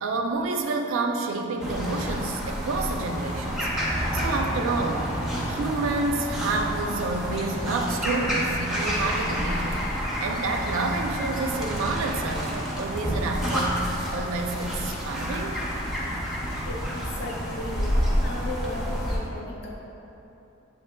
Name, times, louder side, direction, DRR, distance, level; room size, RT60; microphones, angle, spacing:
voice 1, 0.0-3.7 4.1-5.0 5.5-13.8 14.1-15.6, right 3 dB, 75° right, 3 dB, 0.4 m, -29 dB
sound 1, 1.6-19.2, equal, ahead, 0.5 m, -29 dB
voice 2, 17.2-19.7, left 2 dB, 55° left, -3 dB, 0.7 m, -36 dB
7.1 x 2.8 x 2.2 m, 2.9 s
head